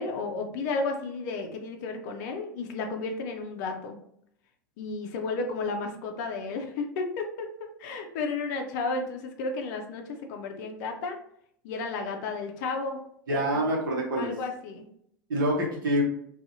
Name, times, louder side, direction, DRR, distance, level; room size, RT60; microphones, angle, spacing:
voice 1, 0.0-4.0 4.8-7.5 7.8-10.0 10.3-11.2 11.6-13.0 13.5-13.6 14.2-14.8, left 3 dB, 55° left, 4 dB, 0.5 m, -32 dB
voice 2, 13.3-14.3 15.3-16.0, right 1 dB, 75° right, -2 dB, 0.8 m, -26 dB
2.6 x 2.3 x 2.6 m, 0.69 s
figure-of-eight pair, 80°, 11 cm